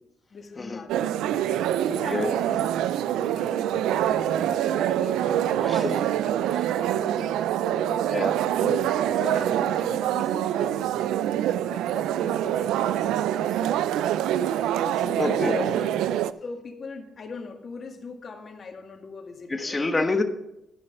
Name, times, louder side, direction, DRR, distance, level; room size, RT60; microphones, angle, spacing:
voice 1, 0.3-1.4 1.9-2.7 3.1-8.1 8.6-13.8 14.7-15.9 16.4-19.8, left 4 dB, 45° left, 1.8 m, -40 dB
sound 1, 0.9-16.3, right 11 dB, 90° right, 0.3 m, -25 dB
voice 2, 15.2-15.6 19.5-20.2, left 3 dB, 25° left, 1.2 m, -26 dB
12.0 x 5.7 x 6.7 m
cardioid pair, 90°, 0 cm